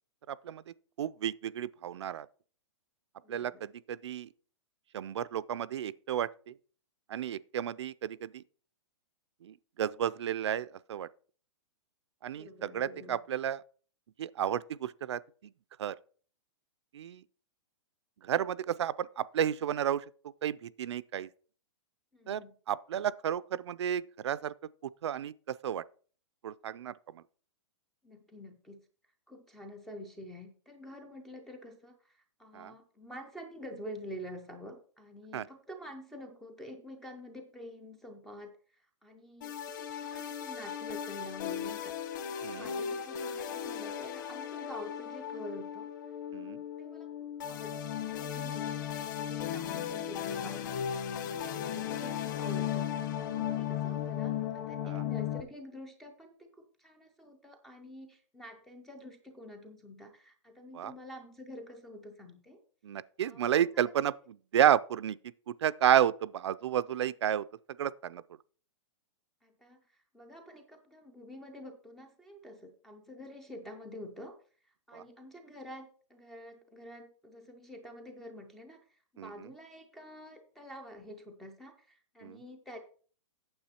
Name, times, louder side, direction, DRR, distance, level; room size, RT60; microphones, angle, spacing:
voice 1, 0.3-2.3 3.3-4.3 4.9-6.5 7.1-8.4 9.4-11.1 12.2-13.6 14.2-15.5 15.8-15.9 16.9-17.2 18.2-20.0 20.4-21.3 22.3-22.4 22.7-24.5 25.0-25.8 26.4-27.2 32.5-32.7 35.3-35.5 42.4-42.7 46.3-46.6 54.8-55.0 60.7-60.9 62.8-65.2 65.5-67.4 67.8-68.2 74.9-75.0 79.2-79.3 82.2-82.4, right 10 dB, 60° right, 0.4 m, -32 dB
voice 2, 3.2-3.6 12.3-13.2 22.1-22.5 28.0-28.8 29.3-45.9 46.4-50.9 51.3-62.6 63.2-63.9 69.4-74.4 74.6-82.8, equal, ahead, 0.3 m, -48 dB
sound 1, 39.4-55.4, left 9 dB, 40° left, 1.2 m, -36 dB
8.7 x 7.4 x 4.3 m
hypercardioid pair, 175°, 16 cm